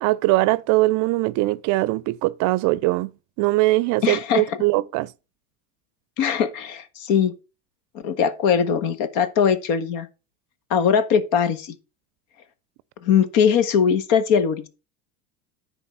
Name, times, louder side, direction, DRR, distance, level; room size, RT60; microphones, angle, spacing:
voice 1, 0.0-3.1 3.4-5.1, right 19 dB, 55° right, 0.5 m, -21 dB
voice 2, 4.0-4.6 6.2-7.3 8.0-10.1 10.7-11.7 13.0-14.7, left 7 dB, 60° left, 1.5 m, -21 dB
9.9 x 4.0 x 5.6 m
supercardioid pair, 110°, 37 cm